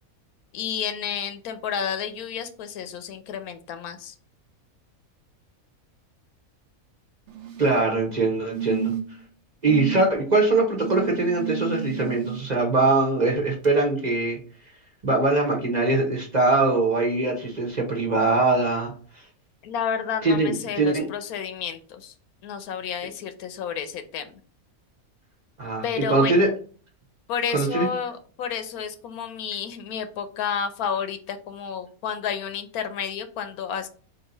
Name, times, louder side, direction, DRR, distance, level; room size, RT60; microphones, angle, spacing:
voice 1, 0.5-4.1 19.6-22.1 22.4-24.4 25.8-26.4 27.3-33.9, left 7 dB, 85° left, 9 dB, 1.1 m, -31 dB
sound 1, 7.3-7.8 8.5-9.2 9.7-10.1 10.8-12.4 13.6-13.7, right 10 dB, 60° right, 0.8 m, -31 dB
voice 2, 7.6-8.9 9.6-14.4 15.0-18.9 20.2-21.1 25.6-26.5 27.5-27.9, right 2 dB, 35° right, 1 dB, 0.9 m, -22 dB
3.8 x 2.8 x 3.8 m, 0.41 s
omnidirectional pair, 1.5 m